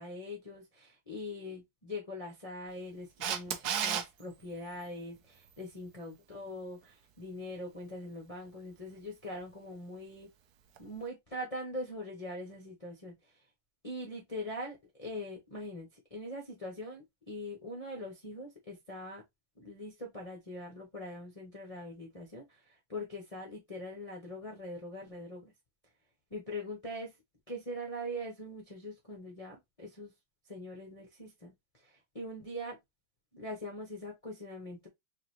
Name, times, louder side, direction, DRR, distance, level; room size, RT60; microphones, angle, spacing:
voice 1, 0.0-10.3 10.8-13.4 13.8-19.2 19.6-25.5 26.3-27.1 27.5-30.1 30.5-31.5 31.8-32.8 33.3-34.9, left 1 dB, 45° left, 0.4 m, -42 dB
Camera, 3.2-4.0 10.8-10.9, right 8 dB, 70° right, 1.0 m, -31 dB
4.8 x 2.6 x 3.0 m
omnidirectional pair, 2.2 m